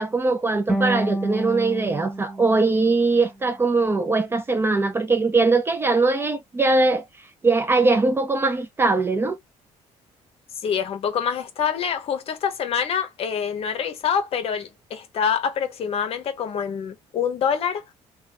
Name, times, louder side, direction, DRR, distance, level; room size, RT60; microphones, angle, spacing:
voice 1, 0.0-7.0 7.4-9.4, right 3 dB, 20° right, 0.4 m, -21 dB
sound 1, 0.7-3.8, right 1 dB, ahead, 0.8 m, -29 dB
voice 2, 10.6-17.8, left 7 dB, 50° left, 0.9 m, -26 dB
3.1 x 2.3 x 2.8 m
cardioid pair, 130°, 12 cm